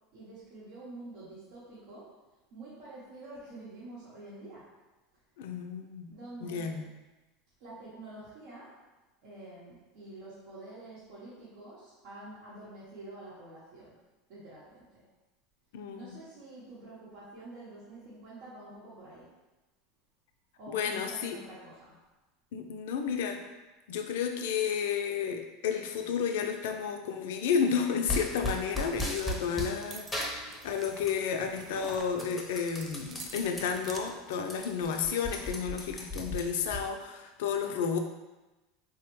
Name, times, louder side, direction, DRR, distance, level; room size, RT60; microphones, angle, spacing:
voice 1, 0.1-2.1 2.5-4.7 6.1-6.8 7.6-8.7 9.2-13.9 14.3-15.1 15.9-19.3 20.6-22.0, right 2 dB, 70° right, -9 dB, 0.9 m, -47 dB
voice 2, 5.4-6.1 6.4-6.8 15.7-16.2 20.7-21.4 22.5-23.4 23.9-38.0, left 7 dB, 75° left, 5 dB, 0.3 m, -32 dB
sound 1, 28.1-29.8 30.1-31.3 31.6-33.6 34.1-34.2 34.4-36.8, left 1 dB, 10° left, 0.6 m, -36 dB
sound 2, 28.2-35.5, right 4 dB, 35° right, 0.3 m, -49 dB
3.1 x 2.1 x 3.0 m, 1.1 s
supercardioid pair, 105°, 0 cm